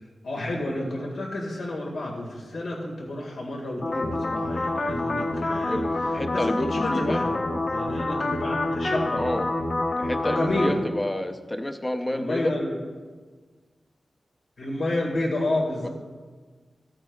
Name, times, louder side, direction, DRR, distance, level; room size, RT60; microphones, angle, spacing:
voice 1, 0.2-7.4 7.7-9.4 10.2-10.8 12.1-12.8 14.6-15.9, left 1 dB, 85° left, -1 dB, 1.8 m, -30 dB
sound 1, 3.8-10.7, left 2 dB, 55° left, 1.1 m, -27 dB
voice 2, 5.7-7.2 9.2-9.5 10.0-12.5 15.8-15.9, left 1 dB, 15° left, 7 dB, 0.6 m, -29 dB
15.5 x 8.7 x 2.3 m, 1.4 s
wide cardioid pair, 145°, 0 cm